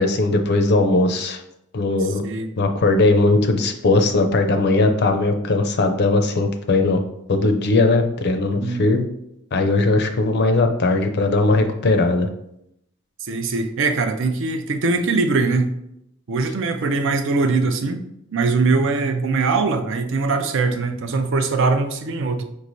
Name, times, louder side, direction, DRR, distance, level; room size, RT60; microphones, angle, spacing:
voice 1, 0.0-1.4 1.7-2.2 2.6-7.0 7.3-9.1 9.5-12.3, left 2 dB, 50° left, 6 dB, 0.5 m, -19 dB
voice 2, 2.0-2.5 8.5-9.1 13.2-15.7 16.3-18.0 18.3-22.4, right 3 dB, 60° right, 8 dB, 0.5 m, -21 dB
5.3 x 3.1 x 2.6 m, 0.79 s
head